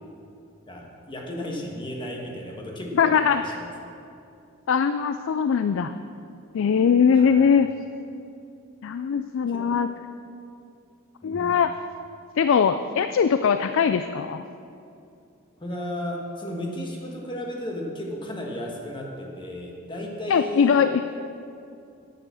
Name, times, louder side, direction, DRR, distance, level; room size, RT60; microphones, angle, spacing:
voice 1, 0.7-3.7 7.1-7.5 9.5-9.8 11.2-11.5 15.6-20.8, equal, 25° left, 0 dB, 1.5 m, -34 dB
voice 2, 2.9-3.4 4.7-5.9 6.5-7.7 8.8-9.9 11.2-11.7 12.4-14.4 20.3-21.0, left 6 dB, 65° left, 10 dB, 0.4 m, -21 dB
9.9 x 8.9 x 6.4 m, 2.6 s
head